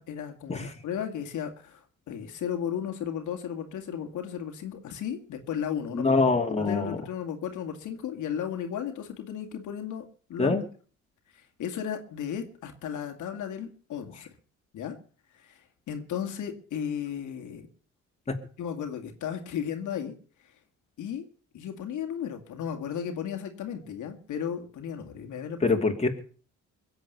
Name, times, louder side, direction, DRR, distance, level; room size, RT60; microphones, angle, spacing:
voice 1, 0.0-6.2 6.5-10.0 10.3-10.6 11.3-14.3 14.7-15.0 15.3-17.7 18.6-20.2 21.0-21.2 21.5-25.7, left 8 dB, 75° left, 4 dB, 2.3 m, -35 dB
voice 2, 5.9-7.0 10.4-10.6 18.3-18.4 25.6-26.2, left 3 dB, 20° left, 3 dB, 2.8 m, -25 dB
22.0 x 7.9 x 6.9 m, 0.43 s
cardioid pair, 90°, 30 cm